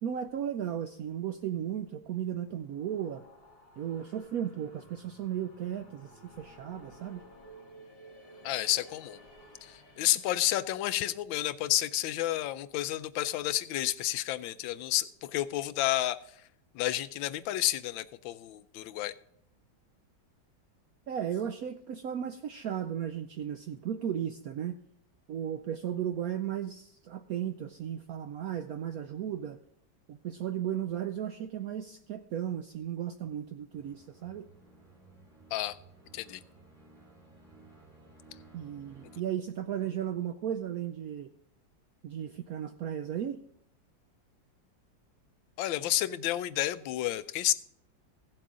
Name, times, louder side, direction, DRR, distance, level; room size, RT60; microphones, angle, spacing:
voice 1, 0.0-3.2 3.8-6.1 6.4-7.2 21.1-24.8 25.3-29.6 30.1-34.5 38.5-41.3 42.0-43.4, right 9 dB, 80° right, 8 dB, 0.8 m, -35 dB
sound 1, 2.5-10.8, equal, 30° left, 1.7 m, -55 dB
voice 2, 8.4-9.2 9.6-16.2 16.7-19.1 35.5-35.8 36.1-36.4 45.6-47.5, left 14 dB, 85° left, 14 dB, 1.3 m, -30 dB
sound 2, 33.7-39.2, right 2 dB, 20° right, 3.5 m, -57 dB
16.0 x 7.5 x 3.7 m, 0.69 s
omnidirectional pair, 2.1 m